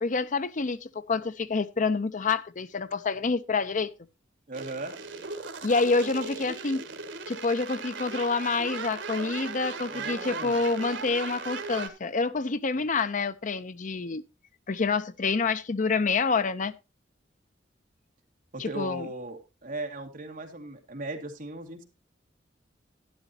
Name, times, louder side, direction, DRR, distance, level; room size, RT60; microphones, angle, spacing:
voice 1, 0.0-3.9 5.6-6.8 7.3-14.2 14.7-16.7 18.6-19.1, left 4 dB, 45° left, 0.6 m, -27 dB
voice 2, 4.5-4.9 9.9-10.6 18.5-21.8, right 2 dB, 50° right, 2.1 m, -37 dB
sound 1, 4.5-11.9, right 4 dB, 80° right, 1.9 m, -37 dB
12.0 x 11.0 x 2.8 m
head